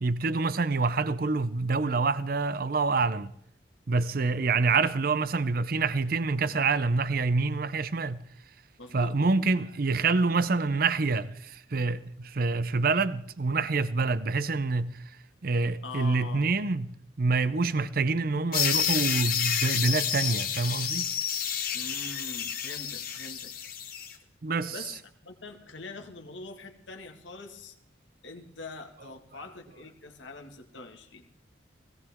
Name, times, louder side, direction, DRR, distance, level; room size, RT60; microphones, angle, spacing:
voice 1, 0.0-3.3 3.9-8.2 8.9-14.9 15.4-21.1 24.4-24.8, right 3 dB, 50° right, 0.6 m, -26 dB
voice 2, 8.8-9.2 15.8-16.6 21.7-23.5 24.7-27.7 28.2-31.3, left 3 dB, 75° left, 1.9 m, -43 dB
sound 1, 18.5-24.1, left 8 dB, 50° left, 1.5 m, -29 dB
18.0 x 17.0 x 3.6 m
head